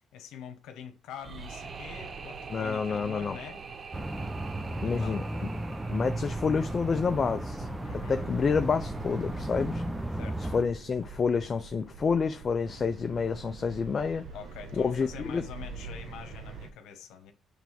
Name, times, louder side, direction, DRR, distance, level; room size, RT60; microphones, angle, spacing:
voice 1, 0.1-3.6 4.8-5.2 7.8-8.2 10.1-10.5 14.3-17.3, left 8 dB, 90° left, 1.3 m, -44 dB
sound 1, 1.1-8.1, right 5 dB, 45° right, 0.9 m, -46 dB
sound 2, 1.2-16.7, right 4 dB, 65° right, 1.2 m, -45 dB
voice 2, 2.5-3.4 4.8-5.5 5.9-7.7 7.9-9.8 10.4-14.3 14.8-15.4, left 5 dB, 45° left, 0.6 m, -29 dB
sound 3, 3.9-10.6, right 1 dB, 10° right, 0.8 m, -35 dB
7.3 x 3.5 x 5.9 m
cardioid pair, 90°, 0 cm